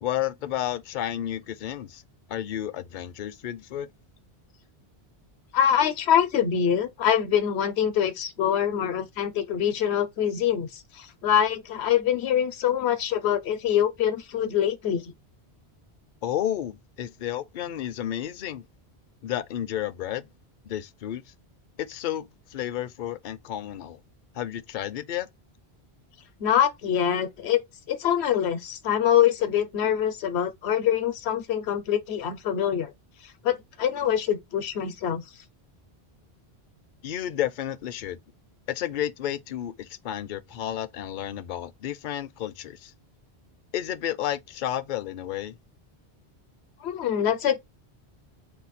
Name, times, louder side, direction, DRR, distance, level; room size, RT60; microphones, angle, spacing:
voice 1, 0.0-2.0 2.3-3.9 16.2-18.6 19.2-20.3 20.6-21.2 21.8-24.0 24.3-25.3 37.0-38.2 38.7-42.9 43.7-45.5, left 11 dB, 55° left, 0.6 m, -31 dB
voice 2, 5.5-15.1 26.4-27.6 27.9-32.9 33.4-35.2 46.8-47.6, left 9 dB, 85° left, 1.0 m, -24 dB
5.6 x 2.3 x 4.1 m
omnidirectional pair, 1.1 m